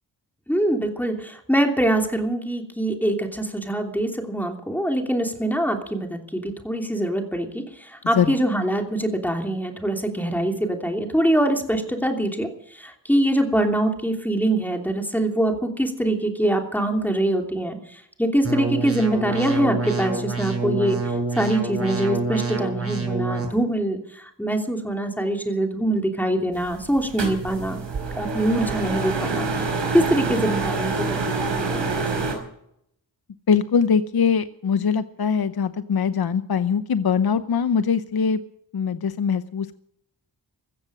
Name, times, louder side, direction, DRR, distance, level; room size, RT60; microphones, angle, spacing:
voice 1, 0.5-21.0 21.4-27.8 28.1-29.5 29.9-32.1, right 1 dB, 5° left, 3 dB, 3.0 m, -24 dB
sound 1, 18.4-23.4, right 3 dB, 30° right, 6.9 m, -27 dB
sound 2, 26.5-32.3, right 3 dB, 90° right, 5.2 m, -27 dB
voice 2, 33.5-38.4 38.7-39.8, left 6 dB, 60° left, 11 dB, 0.8 m, -22 dB
15.5 x 14.0 x 6.3 m, 0.71 s
wide cardioid pair, 90°, 43 cm